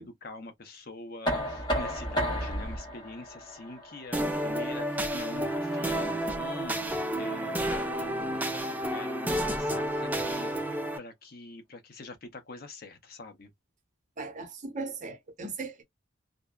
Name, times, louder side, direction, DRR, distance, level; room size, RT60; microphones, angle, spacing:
voice 1, 0.0-13.5, left 2 dB, 50° left, 0.6 m, -44 dB
Knock, 1.3-7.1, equal, 25° left, 1.1 m, -34 dB
sound 1, 4.1-11.0, right 1 dB, 10° right, 0.3 m, -30 dB
voice 2, 14.2-15.8, right 3 dB, 40° right, 0.7 m, -38 dB
2.5 x 2.1 x 2.2 m
head